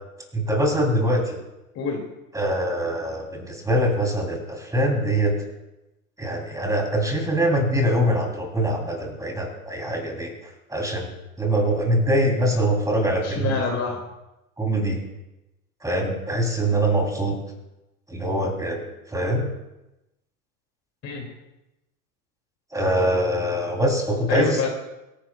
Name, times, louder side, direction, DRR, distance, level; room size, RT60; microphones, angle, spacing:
voice 1, 0.3-1.4 2.3-5.4 6.2-10.3 10.7-11.1 11.4-13.6 14.6-15.0 15.8-17.4 18.1-18.8 19.1-19.5 22.7-24.7, right 1 dB, 5° right, 0 dB, 3.2 m, -23 dB
voice 2, 1.7-2.1 13.2-13.9 21.0-21.3 24.3-24.7, left 5 dB, 35° left, 1 dB, 2.5 m, -26 dB
24.5 x 10.5 x 2.3 m, 0.96 s
hypercardioid pair, 90°, 46 cm